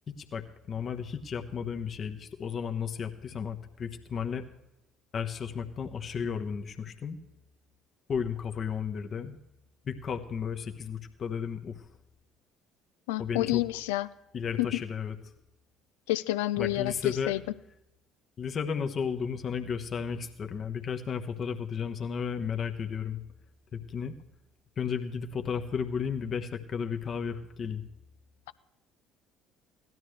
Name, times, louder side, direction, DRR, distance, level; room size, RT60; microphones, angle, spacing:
voice 1, 0.1-4.4 5.1-7.2 8.1-9.4 9.8-11.8 13.2-13.6 14.3-15.2 16.6-17.4 18.4-23.2 23.7-24.2 24.8-27.8, left 6 dB, 45° left, 6 dB, 1.1 m, -33 dB
voice 2, 13.1-14.1 14.6-14.8 16.1-17.4, left 17 dB, 75° left, 16 dB, 0.4 m, -29 dB
17.0 x 12.5 x 3.2 m, 0.86 s
hypercardioid pair, 60°, 0 cm